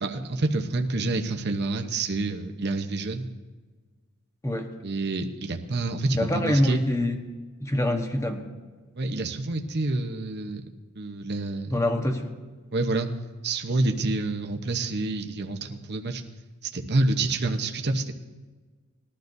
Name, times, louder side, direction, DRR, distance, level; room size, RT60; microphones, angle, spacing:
voice 1, 0.0-3.3 4.8-6.8 9.0-10.6 11.0-11.7 12.7-13.1 13.4-16.2 16.6-18.1, right 2 dB, 50° right, 4 dB, 0.9 m, -28 dB
voice 2, 6.1-7.2 7.6-8.5 11.7-12.3, left 1 dB, 15° left, 4 dB, 1.1 m, -25 dB
20.5 x 12.0 x 2.7 m, 1.4 s
head